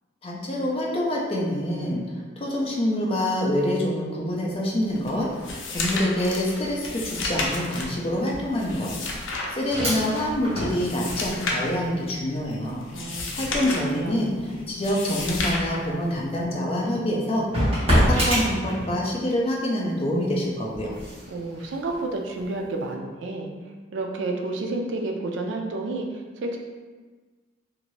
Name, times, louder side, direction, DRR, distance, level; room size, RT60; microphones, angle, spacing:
voice 1, 0.2-12.8 13.3-17.4 17.9-21.0, left 1 dB, 30° left, -3 dB, 0.5 m, -26 dB
sound 1, 4.3-4.6 4.9-19.3 19.7-22.8, equal, 30° right, 1.1 m, -30 dB
sound 2, 4.9-16.5, left 2 dB, 80° left, 0.5 m, -32 dB
voice 2, 12.9-14.6 21.3-23.5 23.9-26.6, right 2 dB, 70° right, 2 dB, 0.4 m, -31 dB
2.6 x 2.5 x 3.0 m, 1.4 s
head